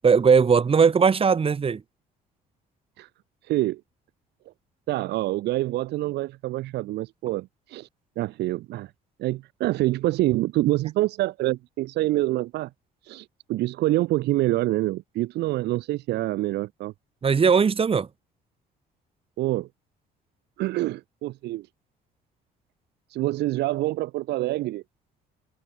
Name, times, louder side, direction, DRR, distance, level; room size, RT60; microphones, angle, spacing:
voice 1, 0.0-1.8 17.2-18.1, right 6 dB, 35° right, 6.5 m, -19 dB
voice 2, 3.4-3.8 4.9-7.9 8.2-8.9 9.2-12.7 13.0-16.9 19.4-19.7 20.6-21.7 23.1-24.8, right 17 dB, 80° right, 6.1 m, -26 dB
cardioid pair, 110°, 17 cm